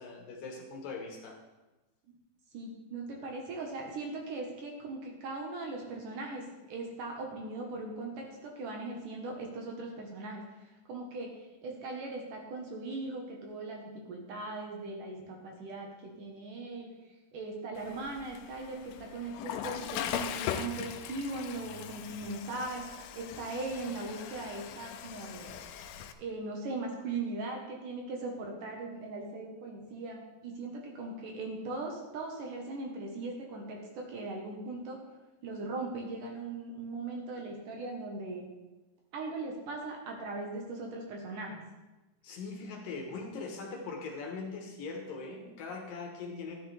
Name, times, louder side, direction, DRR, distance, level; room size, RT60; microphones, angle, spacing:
voice 1, 0.0-1.4 42.2-46.6, left 4 dB, 65° left, 1 dB, 2.7 m, -41 dB
voice 2, 2.5-11.3 11.6-16.9 17.3-22.8 23.1-25.5 26.2-35.0 35.4-38.5 39.1-41.6, right 2 dB, 65° right, 0 dB, 2.5 m, -39 dB
Water / Toilet flush, 17.8-26.1, left 9 dB, 85° left, 2.5 m, -40 dB
13.0 x 10.0 x 3.3 m, 1.1 s
omnidirectional pair, 4.5 m